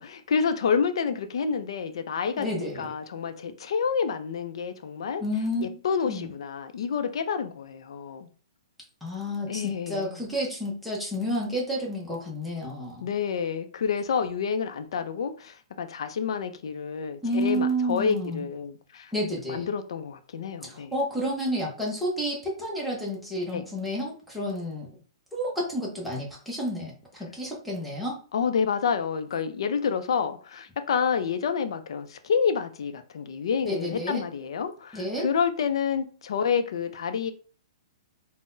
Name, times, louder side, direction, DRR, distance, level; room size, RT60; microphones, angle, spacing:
voice 1, 0.0-5.2 5.6-8.3 9.5-10.2 13.0-19.1 19.5-20.9 23.5-23.7 28.3-37.3, left 6 dB, 60° left, 0.4 m, -28 dB
voice 2, 2.4-2.9 5.2-5.7 6.1-6.3 9.0-13.1 17.2-18.4 19.1-19.7 20.6-24.9 25.3-28.2 33.6-34.2 34.9-35.3, equal, ahead, 0.6 m, -30 dB
3.7 x 2.0 x 2.6 m
hypercardioid pair, 170°, 3 cm